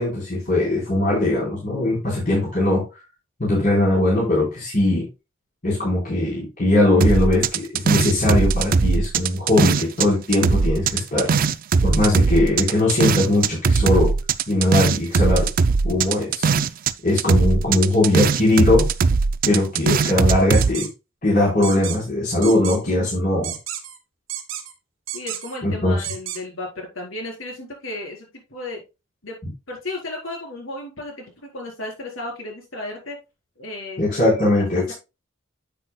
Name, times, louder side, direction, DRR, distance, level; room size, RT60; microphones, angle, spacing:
voice 1, 0.0-2.9 3.4-5.1 5.6-11.3 11.8-14.1 14.5-15.5 15.8-16.5 17.0-18.9 19.5-20.9 21.2-23.5 25.6-25.9 34.0-34.9, left 2 dB, 45° left, -6 dB, 3.9 m, -20 dB
sound 1, 7.0-10.1 10.3-16.9 17.2-20.7, right 5 dB, 45° right, 0.4 m, -19 dB
sound 2, 20.5-20.9 21.6-22.0 22.4-22.8 23.4-24.0 24.3-24.7 25.1-25.6 26.0-26.4, right 11 dB, 85° right, 1.4 m, -31 dB
voice 2, 25.1-28.8 29.2-29.4 29.7-33.2 33.6-34.0 34.5-34.9, left 2 dB, 80° left, 1 dB, 4.2 m, -34 dB
10.0 x 7.9 x 2.2 m, 0.26 s
head